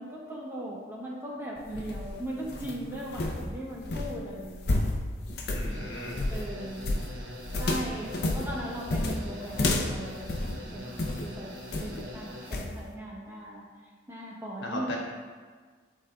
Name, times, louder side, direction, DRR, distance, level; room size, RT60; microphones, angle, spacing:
voice 1, 0.0-4.9 6.3-7.0 7.6-11.5 11.8-13.6 14.1-14.9, right 1 dB, 15° right, -4 dB, 0.9 m, -38 dB
sound 1, 1.6-11.3 11.7-12.1 12.5-12.7, left 2 dB, 55° left, 0.6 m, -31 dB
voice 2, 5.5-6.2 14.6-15.0, left 1 dB, 80° left, -2 dB, 1.3 m, -36 dB
sound 2, 5.7-12.6, equal, 80° right, 1.0 m, -44 dB
11.5 x 3.9 x 2.3 m, 1.5 s
head